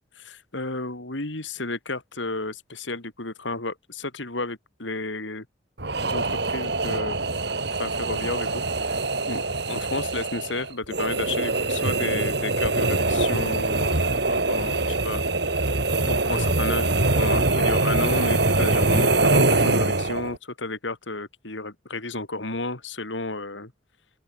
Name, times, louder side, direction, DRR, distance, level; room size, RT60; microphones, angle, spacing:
voice 1, 0.2-5.5 6.0-7.2 7.8-9.0 9.2-9.4 9.7-15.2 15.5-15.6 16.1-23.7, left 2 dB, 75° left, 3.6 m, -32 dB
sound 1, 5.8-20.4, right 2 dB, 60° right, 2.6 m, -23 dB
open air
head